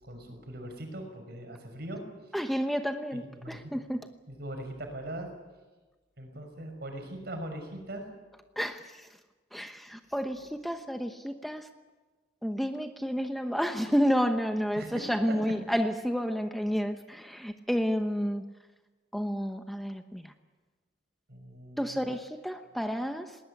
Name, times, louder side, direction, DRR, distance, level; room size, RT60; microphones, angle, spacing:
voice 1, 0.0-2.0 3.1-3.7 4.3-5.3 6.2-8.1 14.8-15.0 15.3-15.4 21.3-22.0, right 1 dB, 60° right, 5 dB, 5.8 m, -40 dB
voice 2, 2.3-4.0 8.6-9.1 9.5-11.7 12.4-18.4 19.1-20.3 21.8-23.4, equal, ahead, 6 dB, 0.9 m, -30 dB
20.0 x 18.5 x 9.9 m, 1.3 s
head